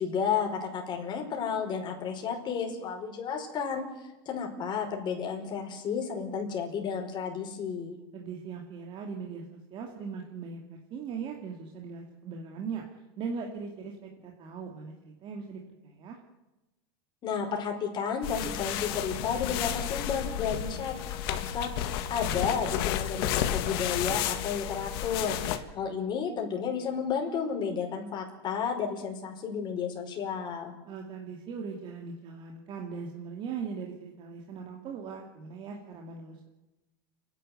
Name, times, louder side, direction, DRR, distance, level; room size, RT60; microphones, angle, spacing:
voice 1, 0.0-8.0 17.2-30.7, left 6 dB, 35° left, 2 dB, 5.2 m, -32 dB
voice 2, 8.1-10.6 10.9-12.8 13.2-16.2 30.9-36.5, right 5 dB, 40° right, 1 dB, 2.5 m, -39 dB
sound 1, 18.2-25.6, left 11 dB, 70° left, 1.8 m, -32 dB
30.0 x 11.0 x 8.0 m, 1.0 s
supercardioid pair, 125°, 13 cm